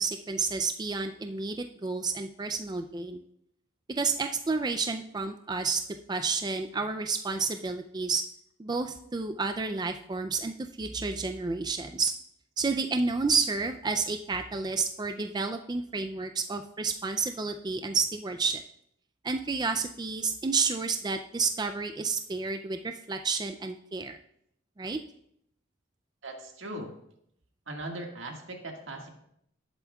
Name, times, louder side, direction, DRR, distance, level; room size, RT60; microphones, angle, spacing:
voice 1, 0.0-3.2 4.0-5.8 6.1-8.2 8.6-12.1 12.6-18.6 19.2-24.2 24.8-25.0, right 4 dB, 20° right, 7 dB, 0.4 m, -30 dB
voice 2, 26.2-26.9 27.7-29.1, right 1 dB, 75° right, 1 dB, 1.8 m, -39 dB
18.5 x 8.1 x 2.3 m, 0.75 s
head